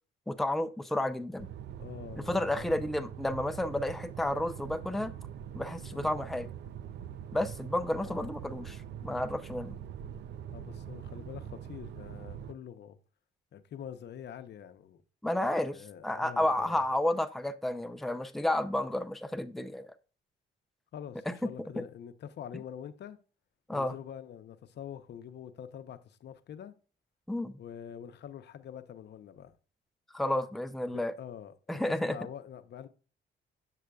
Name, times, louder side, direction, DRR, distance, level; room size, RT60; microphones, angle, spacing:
voice 1, 0.3-1.5 2.3-5.1 5.5-6.5 7.3-9.8 15.2-19.9 21.3-21.4 21.8-21.9 23.7-23.9 27.3-27.5 30.1-31.1 31.7-32.2, left 1 dB, ahead, 0.5 m, -31 dB
sound 1, 1.4-12.5, right 9 dB, 60° right, 0.4 m, -43 dB
voice 2, 1.8-2.8 5.9-6.2 8.0-8.3 10.5-13.0 13.5-15.0 15.7-16.8 20.9-23.2 23.7-26.7 27.6-29.5 30.9-32.9, left 9 dB, 60° left, 0.7 m, -45 dB
7.5 x 6.5 x 2.3 m
cardioid pair, 90°, 20 cm